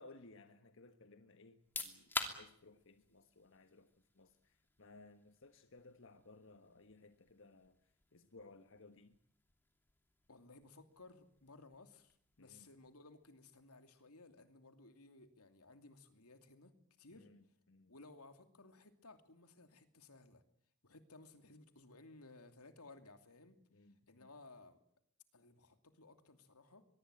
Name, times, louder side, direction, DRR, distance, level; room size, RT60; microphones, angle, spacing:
voice 1, 0.0-9.2 12.4-12.7 17.1-17.9 23.7-24.3, left 3 dB, 60° left, 8 dB, 1.4 m, -61 dB
sound 1, 1.5-14.2, left 2 dB, 10° left, 2.8 m, -51 dB
voice 2, 10.3-17.3 17.9-20.4 20.8-23.6 24.1-24.8 25.3-26.9, left 3 dB, 85° left, 8 dB, 2.7 m, -59 dB
23.5 x 23.0 x 9.0 m, 0.67 s
head